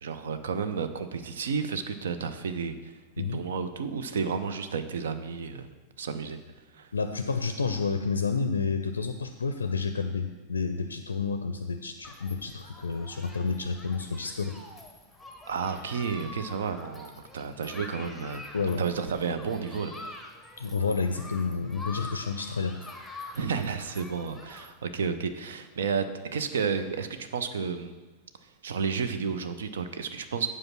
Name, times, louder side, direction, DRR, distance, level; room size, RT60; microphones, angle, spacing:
voice 1, 0.0-2.9 3.3-5.7 6.0-6.4 6.7-6.9 15.5-18.4 18.8-20.2 23.3-26.0 26.3-28.0 28.6-30.5, right 6 dB, 65° right, 10 dB, 0.6 m, -31 dB
voice 2, 6.9-14.6 18.5-18.8 20.6-22.8, left 4 dB, 75° left, 8 dB, 0.4 m, -30 dB
Human group actions, 12.0-24.7, left 2 dB, ahead, 1.0 m, -46 dB
7.8 x 4.8 x 5.9 m, 1.2 s
figure-of-eight pair, 90°, 0 cm